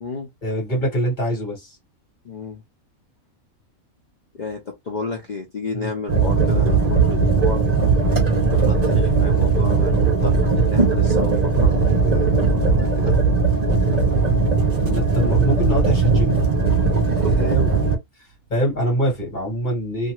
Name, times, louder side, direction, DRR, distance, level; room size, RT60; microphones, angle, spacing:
voice 1, 0.4-1.7 5.7-5.9 14.7-16.3 17.8-17.9 18.5-20.1, equal, 35° left, 1.5 m, -24 dB
voice 2, 2.2-2.6 4.3-7.6 8.5-13.2 17.2-17.7, left 4 dB, 60° left, 0.4 m, -31 dB
sound 1, 6.1-18.0, right 4 dB, 45° right, 0.6 m, -18 dB
2.6 x 2.4 x 2.9 m
omnidirectional pair, 1.5 m